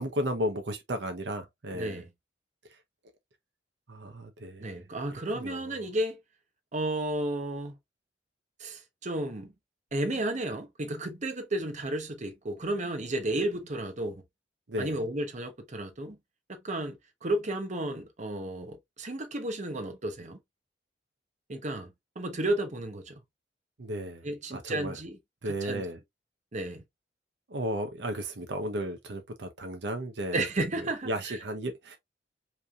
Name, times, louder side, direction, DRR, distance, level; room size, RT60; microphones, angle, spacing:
voice 1, 0.0-2.0 3.9-4.8 5.1-5.8 14.7-14.9 23.8-24.2 24.5-25.0 25.4-26.0 27.5-30.5 30.8-32.0, equal, 70° right, 0.8 m, -34 dB
voice 2, 1.7-2.1 4.6-6.2 6.7-7.8 8.6-9.5 9.9-14.2 14.8-16.2 16.5-20.4 21.5-23.2 24.2-25.2 25.4-25.8 26.5-26.8 30.3-31.4, right 1 dB, 40° right, 0.9 m, -33 dB
5.3 x 3.4 x 2.4 m
head